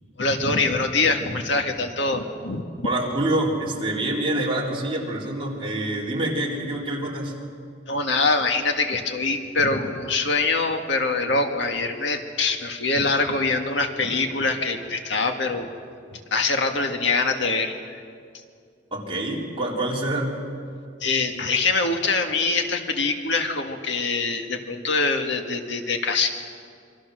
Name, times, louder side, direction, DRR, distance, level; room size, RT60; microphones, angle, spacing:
voice 1, 0.2-2.9 7.9-15.7 16.1-18.0 21.0-26.3, left 3 dB, 65° left, 4 dB, 1.9 m, -24 dB
voice 2, 2.8-7.3 18.9-20.3, right 1 dB, 30° right, -3 dB, 4.2 m, -26 dB
27.0 x 23.5 x 6.5 m, 2.3 s
head